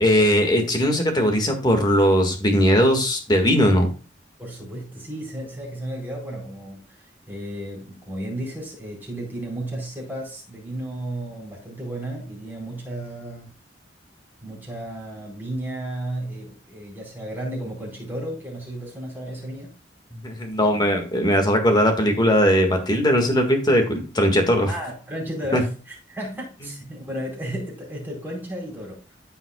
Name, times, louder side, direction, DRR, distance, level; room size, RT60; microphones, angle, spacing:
voice 1, 0.0-3.9 20.2-24.7 25.5-25.6, equal, 25° left, 1.7 m, -19 dB
voice 2, 4.4-13.5 14.4-19.7 24.7-29.1, right 1 dB, 10° right, 4.3 m, -33 dB
14.5 x 5.6 x 2.3 m
head